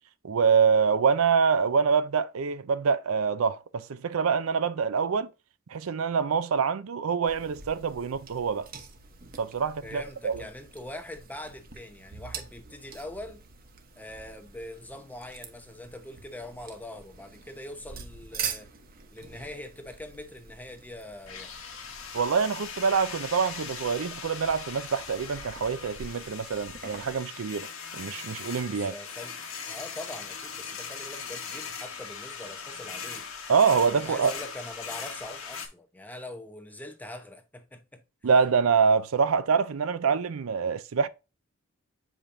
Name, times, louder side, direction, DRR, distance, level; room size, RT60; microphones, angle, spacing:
voice 1, 0.2-5.3 5.7-8.7 9.4-10.4 22.1-27.7 27.9-28.9 33.5-34.3 38.2-41.1, right 6 dB, 75° right, 0.5 m, -25 dB
sound 1, 7.3-27.2, right 6 dB, 45° right, 1.0 m, -45 dB
voice 2, 9.8-13.4 14.0-18.7 19.1-21.5 28.7-29.4 29.7-33.3 33.9-38.0, left 1 dB, 10° left, 0.8 m, -43 dB
sound 2, 21.3-35.7, left 6 dB, 80° left, 1.4 m, -40 dB
7.3 x 5.0 x 2.6 m
head